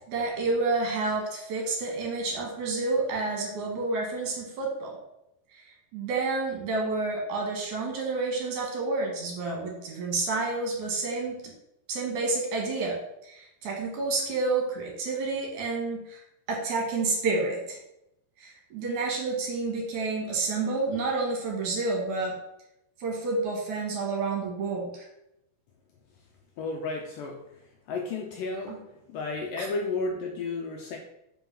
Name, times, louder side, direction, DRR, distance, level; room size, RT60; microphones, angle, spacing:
voice 1, 0.1-5.0 5.9-11.5 11.9-13.0 13.2-16.2 16.5-17.8 18.4-22.3 23.0-25.1 28.7-28.8 29.6-29.7, right 3 dB, 60° right, 0 dB, 2.4 m, -29 dB
voice 2, 26.6-27.4 27.9-31.0, left 3 dB, 75° left, 1 dB, 2.1 m, -32 dB
5.6 x 5.6 x 5.9 m, 0.83 s
omnidirectional pair, 4.8 m